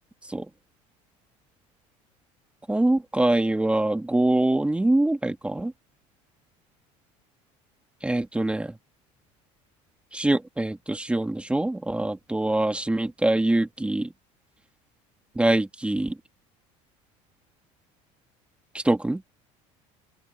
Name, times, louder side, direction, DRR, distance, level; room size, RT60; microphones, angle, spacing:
voice 1, 2.7-5.7 8.0-8.7 10.1-14.1 15.4-16.2 18.7-19.2, right 1 dB, 5° right, 1.9 m, -24 dB
supercardioid pair, 120°, 16 cm